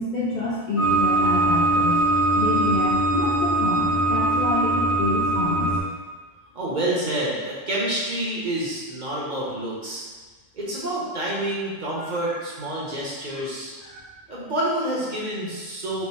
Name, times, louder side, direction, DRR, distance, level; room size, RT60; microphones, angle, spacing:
voice 1, 0.0-2.1 2.4-5.8 12.0-12.4 13.3-13.5 13.8-14.1, left 2 dB, 85° left, -6 dB, 0.3 m, -28 dB
sound 1, 0.8-5.8, right 2 dB, 55° left, 1.0 m, -21 dB
voice 2, 6.5-10.0 10.5-13.7 14.3-16.1, right 1 dB, 40° right, -6 dB, 0.8 m, -28 dB
3.4 x 2.6 x 4.3 m, 1.4 s
omnidirectional pair, 1.4 m